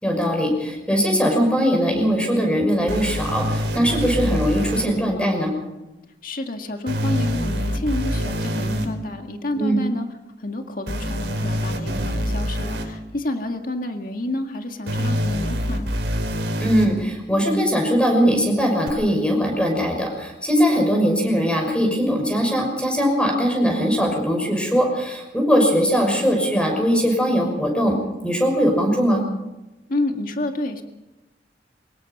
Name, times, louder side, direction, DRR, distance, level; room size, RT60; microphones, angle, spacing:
voice 1, 0.0-5.5 9.6-9.8 16.6-27.9 28.2-29.2, equal, 5° left, 2 dB, 6.0 m, -20 dB
sound 1, 2.9-4.8 6.9-8.9 10.9-12.8 14.9-16.9 18.9-19.0, equal, 90° right, 4.3 m, -25 dB
voice 2, 6.2-10.1 10.4-15.9 29.9-30.8, left 1 dB, 50° left, 4 dB, 2.0 m, -29 dB
24.5 x 21.0 x 5.5 m, 0.99 s
head